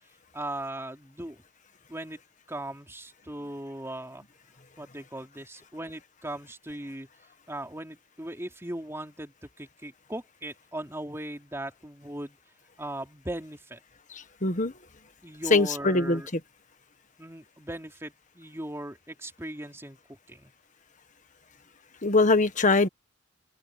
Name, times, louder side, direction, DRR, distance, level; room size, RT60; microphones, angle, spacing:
voice 1, 0.3-1.4 1.9-2.2 2.5-4.2 4.8-7.1 7.5-12.4 12.8-13.8 15.2-16.3 17.2-20.0 20.3-20.5, right 1 dB, 15° right, 3.1 m, -38 dB
voice 2, 14.1-14.7 15.5-16.4 22.0-22.9, left 3 dB, 40° left, 1.6 m, -23 dB
open air
head